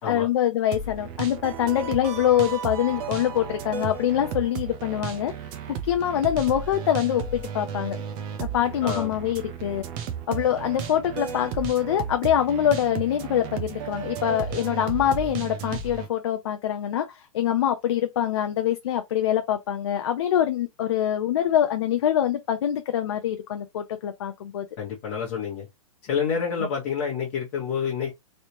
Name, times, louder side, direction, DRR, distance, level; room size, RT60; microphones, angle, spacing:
voice 1, 0.0-5.3 5.7-8.0 8.4-9.8 10.3-24.7, left 10 dB, 50° left, 0.5 m, -24 dB
sound 1, 0.7-16.1, right 7 dB, 15° right, 0.4 m, -34 dB
voice 2, 8.8-9.1 24.8-25.7 26.0-28.1, left 6 dB, 30° left, 1.2 m, -28 dB
3.2 x 2.7 x 2.9 m
hypercardioid pair, 165°, 18 cm